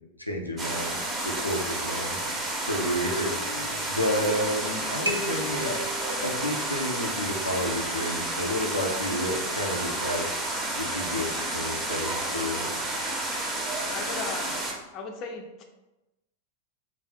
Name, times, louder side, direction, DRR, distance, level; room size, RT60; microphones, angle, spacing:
voice 1, 0.2-1.0 1.2-2.2 2.6-5.8 6.1-10.4 10.8-12.7, left 1 dB, 85° left, 0 dB, 0.5 m, -30 dB
sound 1, 0.6-14.7, right 2 dB, 20° right, 0.7 m, -31 dB
sound 2, 3.2-4.6 5.1-7.7, right 1 dB, 85° right, 0.5 m, -38 dB
voice 2, 13.9-14.6 14.9-15.6, left 4 dB, 35° left, 3 dB, 0.5 m, -36 dB
3.4 x 2.4 x 3.6 m, 0.99 s
figure-of-eight pair, 90°, 0 cm